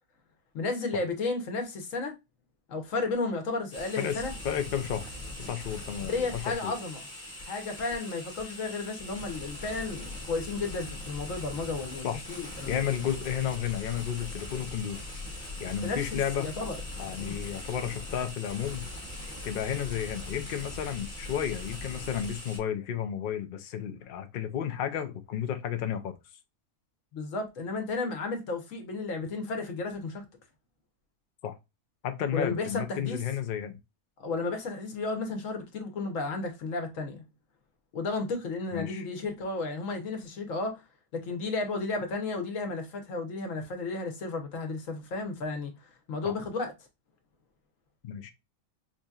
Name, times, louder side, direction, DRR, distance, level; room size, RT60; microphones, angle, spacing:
voice 1, 0.5-2.1 2.7-4.3 6.0-7.1 7.4-12.8 15.8-16.8 17.2-17.3 27.1-30.2 32.3-33.2 34.2-37.2 37.9-40.8 41.1-46.7, left 3 dB, 60° left, 1.2 m, -33 dB
sound 1, 3.7-22.6, left 1 dB, 25° left, 1.2 m, -41 dB
voice 2, 4.0-5.1 5.4-6.8 12.0-12.2 12.7-15.0 15.6-16.5 17.0-18.8 19.4-26.2 31.4-31.6 32.0-33.8 38.7-39.1 46.2-46.3 48.0-48.3, left 9 dB, 85° left, 0.4 m, -32 dB
4.9 x 2.7 x 2.3 m
omnidirectional pair, 1.6 m